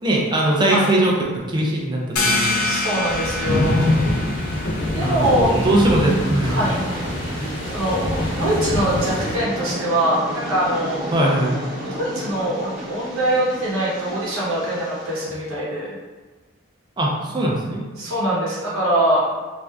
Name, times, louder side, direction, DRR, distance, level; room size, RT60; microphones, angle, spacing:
voice 1, 0.0-2.6 3.6-3.7 5.0-6.7 11.1-11.6 17.0-17.8, right 1 dB, 20° right, -2 dB, 0.4 m, -21 dB
sound 1, 2.2-7.5, left 3 dB, 90° left, 0.4 m, -27 dB
voice 2, 2.6-3.9 4.6-6.9 7.3-10.2 10.5-11.0 11.8-15.9 18.0-19.2, right 1 dB, 80° right, -6 dB, 0.9 m, -23 dB
sound 2, 3.0-9.4, left 1 dB, 65° left, 1.1 m, -24 dB
Train, 5.2-15.2, right 1 dB, 35° right, 0.7 m, -32 dB
3.2 x 2.5 x 2.3 m, 1.3 s
head